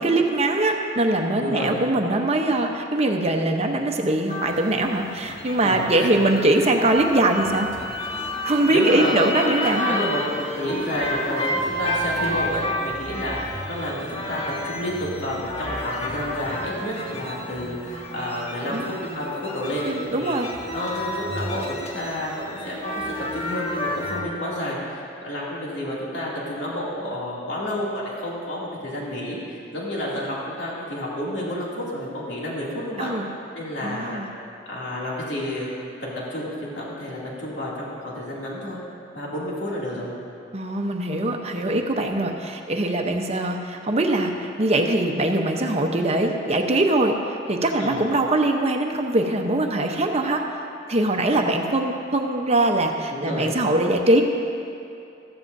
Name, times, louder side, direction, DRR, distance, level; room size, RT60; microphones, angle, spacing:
voice 1, 0.0-7.7 8.4-10.0 18.6-18.9 19.8-20.5 33.0-33.3 33.8-34.3 40.5-50.4 50.9-54.2, right 1 dB, 35° right, 3 dB, 0.9 m, -22 dB
voice 2, 1.4-1.8 5.6-6.3 6.6-6.7 8.7-9.3 9.9-10.2 10.5-13.4 13.7-20.3 20.7-33.1 33.5-34.2 34.7-35.7 36.0-38.9 39.1-40.1 47.8-48.1 53.1-53.5, left 1 dB, 70° left, -6 dB, 2.6 m, -30 dB
sound 1, 4.3-24.2, left 1 dB, 30° left, 1.2 m, -31 dB
15.0 x 14.5 x 2.7 m, 2.6 s
head